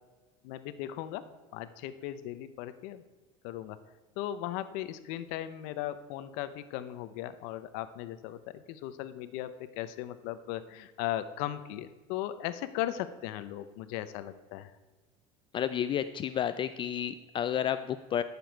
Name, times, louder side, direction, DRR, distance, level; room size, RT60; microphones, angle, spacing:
voice 1, 0.4-1.2 1.5-3.0 3.4-3.8 4.2-14.7, left 13 dB, 70° left, 12 dB, 0.7 m, -37 dB
voice 2, 15.5-18.2, left 9 dB, 35° left, 12 dB, 0.4 m, -31 dB
13.5 x 7.0 x 4.5 m, 1.3 s
supercardioid pair, 120°, 15 cm